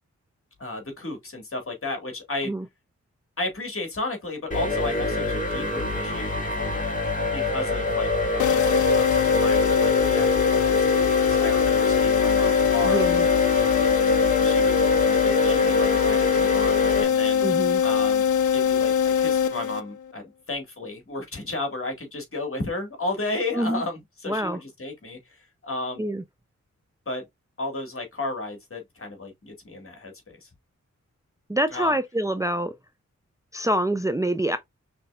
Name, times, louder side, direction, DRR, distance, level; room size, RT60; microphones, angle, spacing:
voice 1, 0.6-2.5 3.4-6.9 7.3-13.2 14.4-14.8 15.1-18.3 18.5-26.0 27.1-27.2 27.6-30.5 31.7-32.0, left 2 dB, 45° left, 2.0 m, -33 dB
sound 1, 4.5-17.0, left 2 dB, 25° left, 1.9 m, -26 dB
sound 2, 8.4-20.1, left 7 dB, 80° left, 0.5 m, -22 dB
voice 2, 12.8-13.3 17.4-17.8 23.5-23.8 24.3-24.6 26.0-26.2 31.5-32.7 33.5-34.6, right 1 dB, 10° right, 0.5 m, -26 dB
5.8 x 3.4 x 2.4 m
cardioid pair, 55°, 30 cm